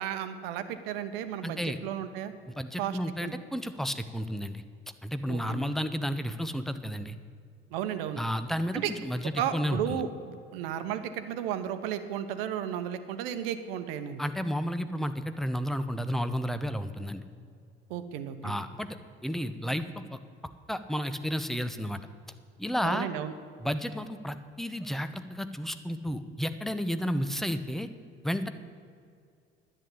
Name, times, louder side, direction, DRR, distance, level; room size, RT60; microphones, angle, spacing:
voice 1, 0.0-2.3 2.8-3.3 5.3-5.7 7.7-8.2 8.7-8.9 9.4-14.2 17.9-18.6 22.8-23.3, right 9 dB, 70° right, 10 dB, 1.0 m, -34 dB
voice 2, 1.4-1.8 2.5-4.6 5.0-7.2 8.2-10.0 14.2-17.2 18.4-18.9 19.2-20.2 20.7-22.0 22.6-23.1 23.6-27.9 28.2-28.5, equal, ahead, 10 dB, 0.8 m, -32 dB
10.5 x 8.8 x 8.4 m, 2.3 s
figure-of-eight pair, 60°, 31 cm